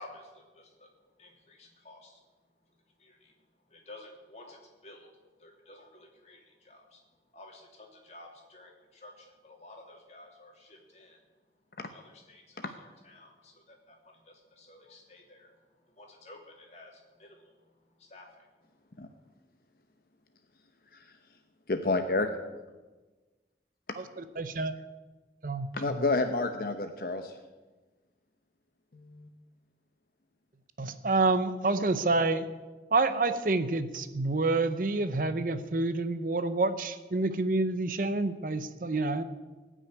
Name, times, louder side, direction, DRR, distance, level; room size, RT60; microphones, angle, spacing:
voice 1, 0.0-2.2 3.0-7.0 7.3-11.2 11.9-19.3, left 2 dB, 40° left, 0 dB, 2.9 m, -53 dB
voice 2, 21.7-22.3 25.7-27.3 28.9-29.3, left 3 dB, 55° left, 6 dB, 0.8 m, -29 dB
voice 3, 24.0-24.7 25.4-26.0 30.8-32.5 32.9-39.2, right 3 dB, 50° right, 11 dB, 0.8 m, -28 dB
19.0 x 6.4 x 9.1 m, 1.2 s
head